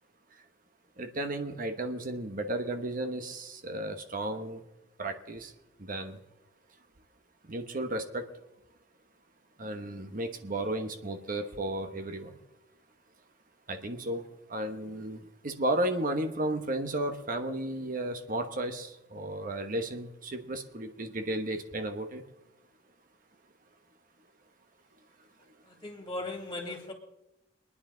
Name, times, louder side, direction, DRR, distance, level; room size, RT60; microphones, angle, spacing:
voice 1, 1.0-4.6 5.0-5.5 5.8-6.2 7.5-8.2 9.6-12.3 13.7-14.2 14.5-22.2, right 1 dB, 50° right, 6 dB, 1.1 m, -34 dB
voice 2, 25.8-26.9, left 2 dB, 25° left, 2 dB, 2.3 m, -37 dB
24.5 x 9.8 x 3.9 m, 0.94 s
head